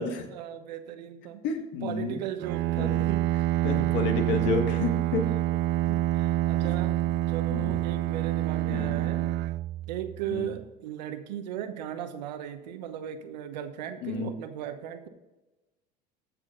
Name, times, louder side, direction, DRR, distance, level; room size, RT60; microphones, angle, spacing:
voice 1, 0.3-1.4 1.8-3.2 3.8-3.9 5.9-9.3 9.9-15.1, right 10 dB, 85° right, 8 dB, 1.0 m, -37 dB
voice 2, 1.4-2.2 2.8-3.1 3.6-5.3 7.5-7.8 8.7-9.0 10.3-10.5 14.0-14.3, left 4 dB, 60° left, 6 dB, 1.8 m, -30 dB
Bowed string instrument, 2.4-10.4, right 14 dB, 60° right, 0.4 m, -27 dB
14.5 x 6.2 x 3.8 m, 1.1 s
hypercardioid pair, 80°, 21 cm